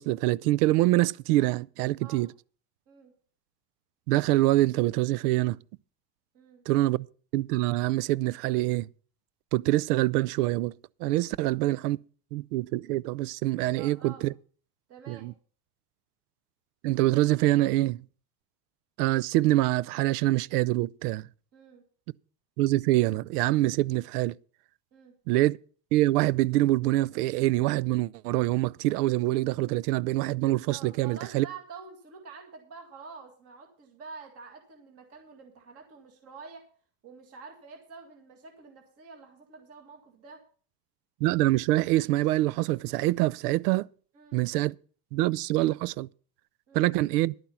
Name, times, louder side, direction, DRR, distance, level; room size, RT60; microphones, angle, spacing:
voice 1, 0.0-2.3 4.1-5.6 6.7-7.1 7.3-8.9 9.5-10.7 11.0-12.0 12.3-14.3 15.1-15.3 16.8-18.0 19.0-21.3 22.6-24.3 25.3-25.6 25.9-31.5 41.2-43.9 44.3-44.8 45.1-46.1 46.7-47.3, right 17 dB, 90° right, 0.5 m, -25 dB
voice 2, 13.8-14.3 14.9-15.3 21.5-21.8 24.9-25.1 30.7-36.7 37.0-40.4 44.1-44.4 46.7-46.9, right 5 dB, 30° right, 2.0 m, -48 dB
11.0 x 8.8 x 5.7 m
supercardioid pair, 160°, 45 cm